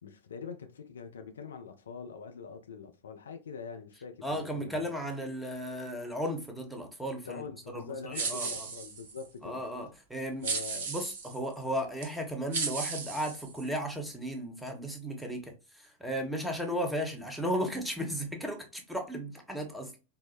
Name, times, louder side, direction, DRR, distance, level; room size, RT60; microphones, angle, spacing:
voice 1, 0.0-4.9 7.2-9.6 10.4-10.9, left 6 dB, 65° left, 0.4 m, -44 dB
voice 2, 4.2-7.4 7.7-8.7 9.4-10.6 10.9-19.9, equal, 5° right, 0.9 m, -35 dB
sound 1, 8.1-9.3 10.4-11.4 12.0-12.1 12.5-13.9, right 5 dB, 55° right, 0.9 m, -35 dB
4.7 x 2.1 x 2.4 m
figure-of-eight pair, 90°, 0 cm